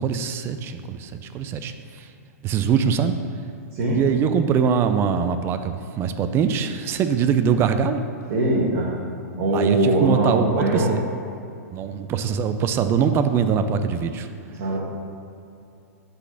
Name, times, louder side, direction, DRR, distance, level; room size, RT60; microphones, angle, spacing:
voice 1, 0.0-2.1 2.4-3.1 3.9-8.0 9.5-11.0 11.7-14.3, right 7 dB, 30° right, 9 dB, 0.4 m, -23 dB
voice 2, 8.3-8.9 9.4-10.9 12.8-12.9 14.6-14.8, right 1 dB, 55° right, -7 dB, 1.4 m, -21 dB
5.7 x 4.0 x 5.8 m, 2.6 s
hypercardioid pair, 125°, 9 cm